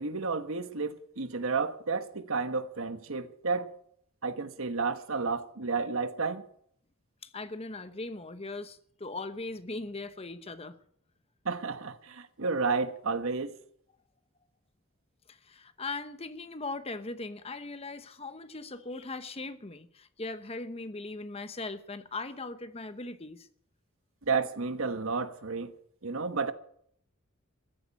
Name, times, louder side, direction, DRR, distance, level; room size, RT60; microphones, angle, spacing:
voice 1, 0.0-3.7 4.2-6.4 11.4-13.5 24.3-25.7 26.0-26.5, right 4 dB, 70° right, 1.2 m, -31 dB
voice 2, 7.2-10.8 15.3-23.5, left 3 dB, 25° left, 0.9 m, -39 dB
14.5 x 8.7 x 9.6 m
head